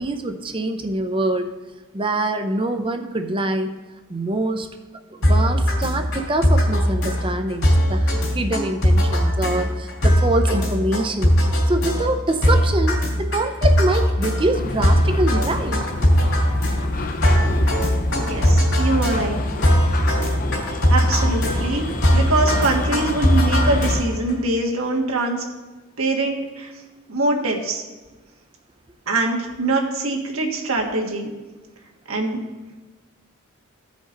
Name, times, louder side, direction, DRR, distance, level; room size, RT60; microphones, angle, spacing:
voice 1, 0.0-1.5 1.9-3.7 4.1-4.7 5.1-11.4 11.7-15.8, right 2 dB, 25° right, 7 dB, 0.6 m, -24 dB
sound 1, 5.2-24.3, equal, 65° left, 2.6 m, -19 dB
sound 2, 14.5-24.0, left 2 dB, 40° left, 0.6 m, -29 dB
voice 2, 18.1-19.4 20.2-20.4 20.9-21.8 22.1-25.4 26.0-26.7 27.1-27.8 29.1-31.3 32.1-32.4, right 2 dB, 80° right, 0 dB, 1.5 m, -23 dB
15.5 x 5.2 x 3.9 m, 1.2 s
head